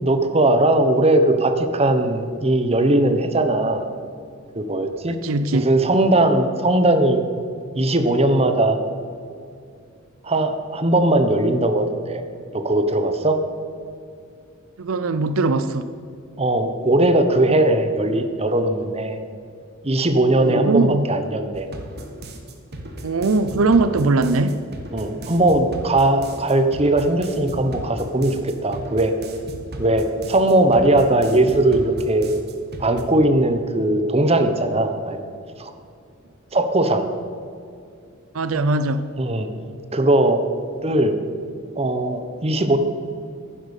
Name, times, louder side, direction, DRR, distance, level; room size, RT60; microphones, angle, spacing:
voice 1, 0.0-3.9 4.5-5.1 5.5-7.2 7.7-8.8 10.2-12.2 12.5-13.4 16.4-19.2 19.8-21.7 24.9-29.1 29.8-32.3 32.8-35.2 35.6-35.7 36.5-37.0 39.2-39.5 39.9-40.4 40.8-41.1 41.8-42.8, right 1 dB, 30° right, 7 dB, 1.0 m, -19 dB
voice 2, 5.2-5.7 14.8-15.9 20.4-21.1 23.0-24.6 38.3-39.1, right 3 dB, 75° right, 11 dB, 0.6 m, -20 dB
sound 1, 21.5-33.0, right 1 dB, 50° right, 1.6 m, -36 dB
11.0 x 10.5 x 6.6 m, 2.4 s
head